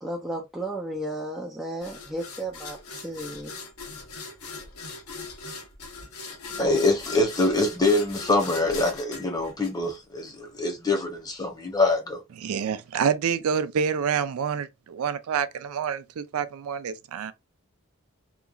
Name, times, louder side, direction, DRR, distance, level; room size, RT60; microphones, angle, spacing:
voice 1, 0.0-3.6, right 1 dB, ahead, 0.4 m, -34 dB
sound 1, 1.8-10.3, left 4 dB, 80° left, 0.9 m, -40 dB
voice 2, 6.6-12.2, left 2 dB, 20° left, 0.8 m, -24 dB
voice 3, 12.4-17.3, right 7 dB, 75° right, 0.4 m, -27 dB
2.9 x 2.3 x 2.3 m
head